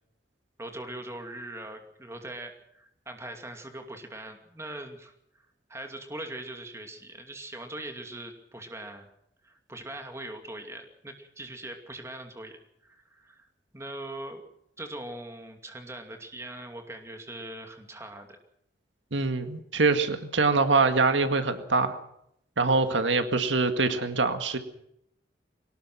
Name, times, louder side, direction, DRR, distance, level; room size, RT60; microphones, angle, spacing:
voice 1, 0.6-5.1 5.7-9.1 9.4-13.5 13.7-14.4 14.8-18.4, right 1 dB, 15° right, 5 dB, 2.6 m, -41 dB
voice 2, 19.1-22.0 22.6-24.6, right 3 dB, 90° right, 8 dB, 2.0 m, -24 dB
22.5 x 19.0 x 6.2 m, 0.75 s
head